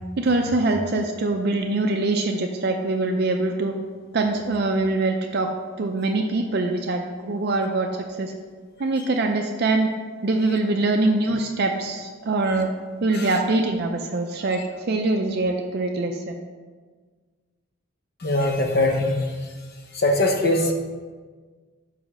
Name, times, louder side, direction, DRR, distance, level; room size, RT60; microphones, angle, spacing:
voice 1, 0.2-3.7 4.1-5.5 5.8-7.9 8.2-8.3 8.8-9.9 10.2-12.7 13.0-14.6 14.9-16.4, right 2 dB, 45° right, 3 dB, 0.4 m, -23 dB
voice 2, 18.2-19.2 19.9-20.7, left 2 dB, 45° left, 2 dB, 0.8 m, -21 dB
5.1 x 4.9 x 6.0 m, 1.5 s
head